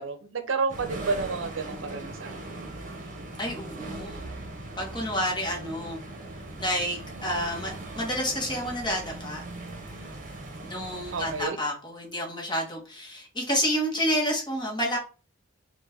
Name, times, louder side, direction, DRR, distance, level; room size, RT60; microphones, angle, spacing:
voice 1, 0.0-2.3 11.1-11.6, right 4 dB, 80° right, 8 dB, 0.6 m, -30 dB
sound 1, 0.7-11.5, right 2 dB, 45° right, 0.9 m, -39 dB
voice 2, 3.4-4.3 4.8-6.0 6.6-9.4 10.6-15.0, equal, 25° left, -1 dB, 1.4 m, -29 dB
4.1 x 2.5 x 3.4 m, 0.35 s
head